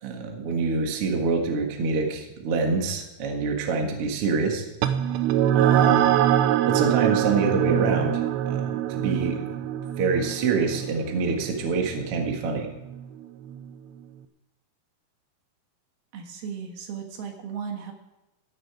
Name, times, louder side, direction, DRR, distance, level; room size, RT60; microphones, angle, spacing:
voice 1, 0.0-4.6 5.5-6.0 6.7-9.5 10.0-12.7, right 4 dB, 45° right, 2 dB, 2.0 m, -26 dB
sound 1, 4.8-13.7, right 10 dB, 90° right, 2.9 m, -24 dB
voice 2, 16.1-17.9, right 7 dB, 70° right, 3 dB, 3.4 m, -35 dB
15.5 x 10.5 x 4.8 m, 0.99 s
omnidirectional pair, 4.7 m